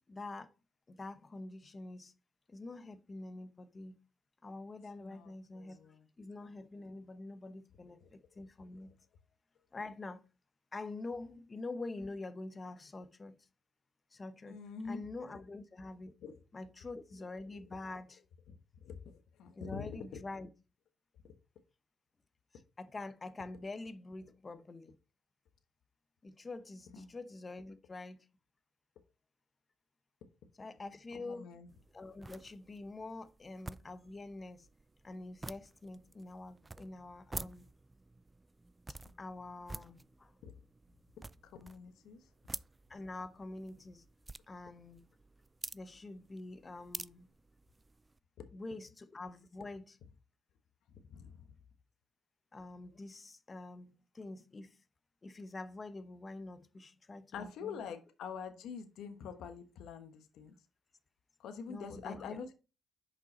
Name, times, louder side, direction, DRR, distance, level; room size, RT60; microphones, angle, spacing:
voice 1, 0.1-0.5 0.9-2.1 2.5-4.0 4.4-5.8 6.2-8.9 9.7-10.2 10.7-13.3 14.1-16.1 16.5-18.2 19.5-20.5 22.8-25.0 26.2-28.3 30.6-31.6 31.9-34.7 35.0-37.7 38.9-40.3 42.9-44.0 44.5-45.1 45.7-47.3 48.5-50.0 52.5-54.8 55.2-57.8 61.7-62.4, left 2 dB, 30° left, 0.8 m, -46 dB
voice 2, 5.0-6.0 14.5-15.0 16.2-16.4 17.5-17.6 18.5-19.9 21.2-21.3 26.9-27.1 31.1-31.7 40.4-40.5 41.5-42.2 50.9-51.5 57.3-60.5 61.4-62.5, left 6 dB, 80° left, 1.1 m, -46 dB
sound 1, 31.7-48.2, right 2 dB, 20° right, 0.3 m, -50 dB
6.4 x 5.3 x 4.2 m
cardioid pair, 90°, 0 cm